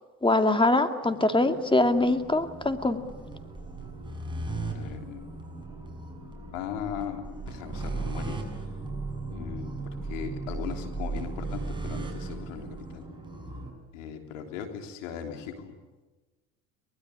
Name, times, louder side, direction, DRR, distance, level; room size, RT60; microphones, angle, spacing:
voice 1, 0.2-3.0, left 2 dB, 15° left, 7 dB, 2.5 m, -23 dB
sound 1, 1.0-13.7, right 3 dB, 10° right, 6.8 m, -37 dB
voice 2, 4.8-5.2 6.5-8.4 9.3-13.1 13.9-15.7, left 8 dB, 90° left, 5 dB, 3.4 m, -38 dB
24.0 x 20.5 x 9.8 m, 1.2 s
supercardioid pair, 80°, 37 cm